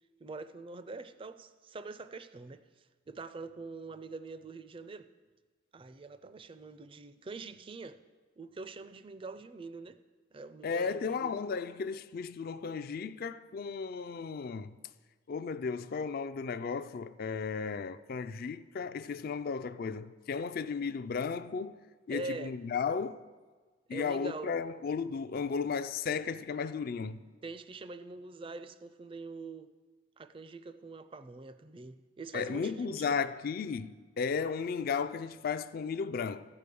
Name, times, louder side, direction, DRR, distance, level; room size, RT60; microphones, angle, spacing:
voice 1, 0.2-5.1 5.7-8.0 8.4-10.0 10.3-11.4 22.1-22.5 23.9-24.5 27.4-29.7 30.2-33.2, right 3 dB, 25° right, 0.4 m, -44 dB
voice 2, 10.6-14.8 15.3-21.8 22.1-23.2 23.9-27.2 32.3-36.5, left 5 dB, 50° left, 0.3 m, -34 dB
14.5 x 5.0 x 6.8 m
head